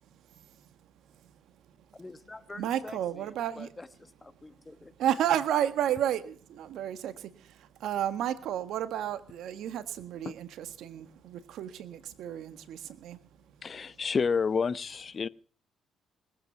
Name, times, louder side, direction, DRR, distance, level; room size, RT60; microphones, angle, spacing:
voice 1, 0.0-1.9 2.5-3.7 5.0-13.9, right 10 dB, 75° right, 11 dB, 1.6 m, -33 dB
voice 2, 1.9-4.9, left 2 dB, 20° left, 12 dB, 1.2 m, -47 dB
voice 3, 13.6-15.3, left 5 dB, 40° left, 18 dB, 0.7 m, -29 dB
20.0 x 9.1 x 7.0 m, 0.42 s
supercardioid pair, 75°, 0 cm